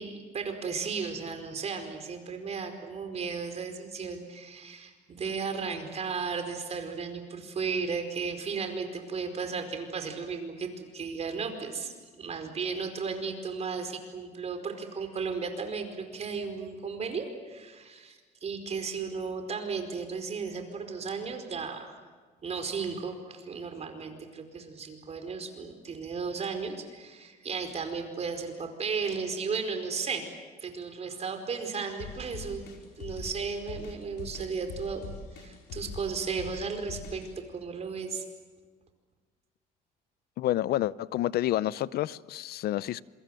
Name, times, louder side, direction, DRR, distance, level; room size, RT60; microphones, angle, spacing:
voice 1, 0.0-22.0 22.4-30.3 30.6-32.7 33.0-38.2, right 5 dB, 40° right, 4.9 m, -35 dB
sound 1, 32.0-37.3, left 5 dB, 85° left, 5.2 m, -42 dB
voice 2, 40.4-43.0, left 14 dB, 70° left, 0.7 m, -29 dB
27.0 x 24.5 x 7.9 m
cardioid pair, 110°, 17 cm